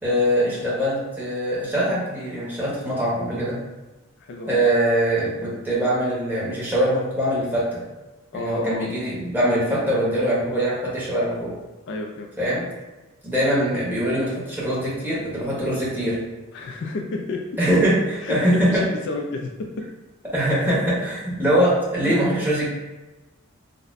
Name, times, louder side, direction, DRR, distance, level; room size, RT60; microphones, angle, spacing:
voice 1, 0.0-3.6 4.5-7.8 8.3-11.5 12.4-12.6 13.2-16.2 17.6-17.9 18.3-18.8 20.3-22.7, equal, 10° right, -8 dB, 1.0 m, -22 dB
voice 2, 4.2-4.7 8.3-8.9 11.9-12.3 16.5-17.4 18.2-19.5, left 3 dB, 55° left, 2 dB, 0.3 m, -31 dB
4.0 x 2.1 x 2.5 m, 1.1 s
head